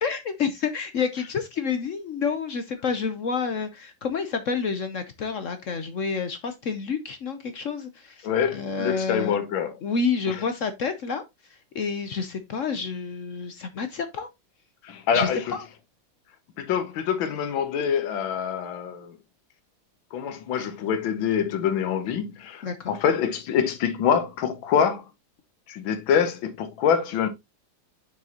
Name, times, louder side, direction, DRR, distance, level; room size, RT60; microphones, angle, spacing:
voice 1, 0.0-9.4 9.8-11.2 11.5-14.3 15.1-15.6 22.6-23.0, left 5 dB, 60° left, 0.8 m, -29 dB
voice 2, 8.2-9.7 10.3-10.4 14.8-15.5 16.6-19.1 20.1-25.0 25.7-27.3, left 7 dB, 80° left, 1.7 m, -25 dB
7.4 x 6.2 x 2.8 m
omnidirectional pair, 2.1 m